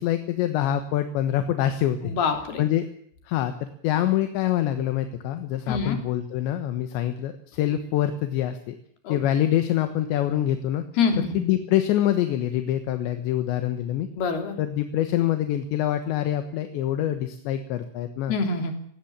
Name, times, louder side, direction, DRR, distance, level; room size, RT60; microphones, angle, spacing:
voice 1, 0.0-2.1 2.6-2.9 3.3-8.8 9.1-10.8 11.3-14.1 14.6-18.3, left 12 dB, 75° left, 9 dB, 3.4 m, -25 dB
voice 2, 2.0-2.6 5.7-6.0 9.0-9.2 11.0-11.4 14.1-14.6 18.3-18.7, left 5 dB, 60° left, 6 dB, 5.0 m, -25 dB
19.0 x 17.5 x 8.8 m, 0.66 s
omnidirectional pair, 5.4 m